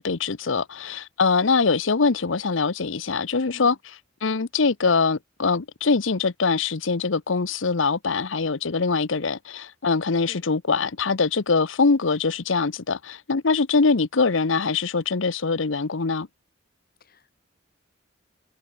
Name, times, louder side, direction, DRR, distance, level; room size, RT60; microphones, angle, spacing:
voice 1, 0.0-3.8 4.2-16.3, left 4 dB, 70° left, 0.8 m, -23 dB
voice 2, 17.0-17.3, left 1 dB, 45° left, 4.4 m, -49 dB
head